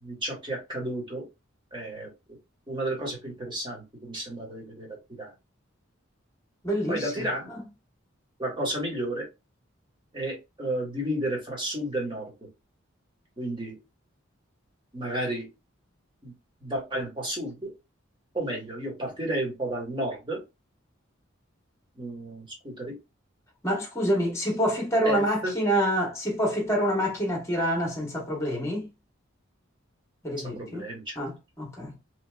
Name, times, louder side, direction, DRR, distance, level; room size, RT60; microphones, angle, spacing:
voice 1, 0.0-1.2 1.7-2.1 2.7-5.3 6.9-7.5 8.4-9.3 10.1-12.3 13.4-13.7 14.9-15.5 16.2-16.3 16.6-17.7 18.3-20.4 22.0-22.9 25.0-25.5 30.3-31.2, right 1 dB, 25° right, 1.4 m, -32 dB
voice 2, 6.6-7.2 23.6-28.9 30.2-30.8 31.2-31.9, equal, 15° left, 1.1 m, -27 dB
3.0 x 2.7 x 2.2 m
head